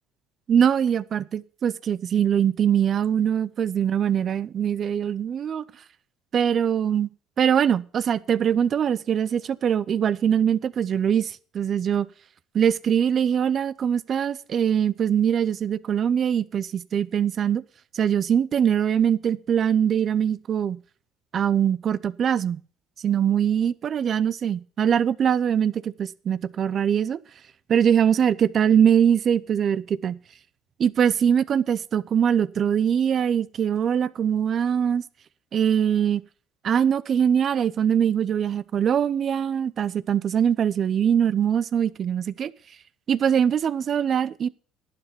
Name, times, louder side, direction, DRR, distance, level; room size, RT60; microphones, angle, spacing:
voice 1, 0.5-5.6 6.3-7.1 7.4-12.1 12.5-17.6 17.9-20.8 21.3-22.6 23.0-27.2 27.7-30.2 30.8-35.0 35.5-36.2 36.6-42.5 43.1-44.5, right 8 dB, 50° right, 0.6 m, -22 dB
11.5 x 8.0 x 5.9 m
supercardioid pair, 80°, 0 cm